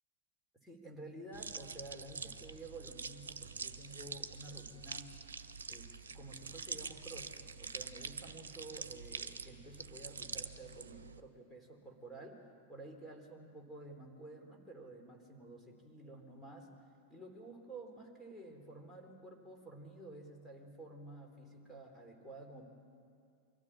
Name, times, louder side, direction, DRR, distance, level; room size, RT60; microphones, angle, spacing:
voice 1, 0.5-5.2 5.7-12.4 12.7-16.7 17.1-22.7, right 2 dB, 5° left, 2 dB, 3.7 m, -51 dB
sound 1, 1.3-11.2, right 5 dB, 70° right, 0.8 m, -46 dB
23.5 x 15.5 x 8.7 m, 2.3 s
figure-of-eight pair, 90°, 0 cm